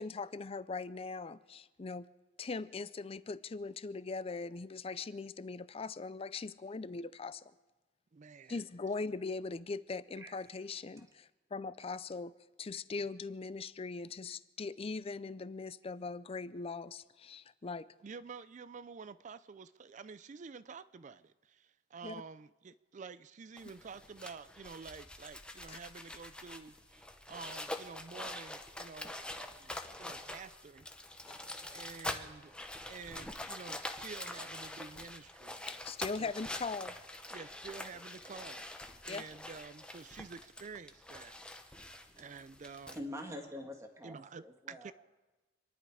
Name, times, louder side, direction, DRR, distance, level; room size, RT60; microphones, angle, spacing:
voice 1, 0.0-2.1 2.4-7.4 8.5-12.3 12.6-17.9 22.0-22.2 25.7-25.8 31.3-31.4 31.7-31.8 35.7-37.0 39.1-39.2, left 4 dB, 30° left, 0.4 m, -40 dB
voice 2, 8.1-8.6 18.0-30.9 31.7-32.5 32.9-35.6 36.2-36.3 37.3-38.6 39.0-41.8 42.2-43.0 44.0-44.9, right 5 dB, 40° right, 0.4 m, -49 dB
sound 1, 23.6-43.0, left 1 dB, 5° left, 0.8 m, -45 dB
voice 3, 42.9-44.9, left 1 dB, 15° right, 1.8 m, -45 dB
26.5 x 11.0 x 4.9 m
head